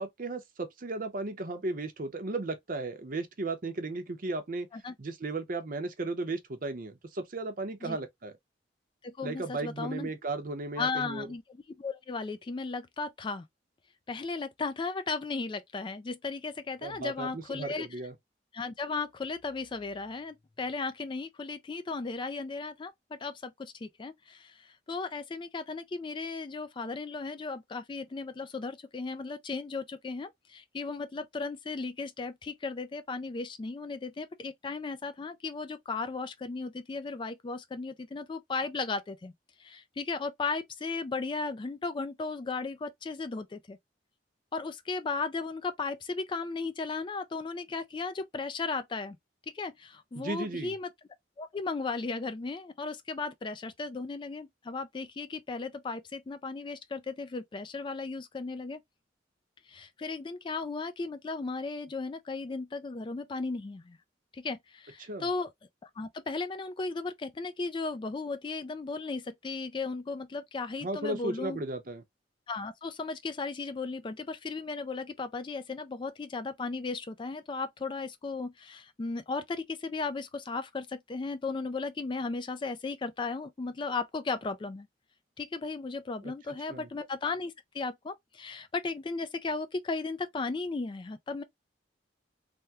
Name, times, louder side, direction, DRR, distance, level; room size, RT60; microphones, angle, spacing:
voice 1, 0.0-4.7 5.0-8.3 9.2-11.3 16.8-18.1 50.2-50.7 65.0-65.3 70.8-72.0 86.2-86.3 86.7-86.9, right 2 dB, 50° right, 0.7 m, -35 dB
voice 2, 9.0-10.1 10.8-11.4 11.8-13.4 14.1-17.9 18.5-39.3 39.6-43.8 44.5-49.2 49.5-50.9 51.4-58.8 59.7-64.0 64.3-65.5 65.8-71.6 72.5-84.9 85.4-91.4, left 4 dB, 25° left, 0.3 m, -36 dB
3.4 x 2.1 x 2.7 m
head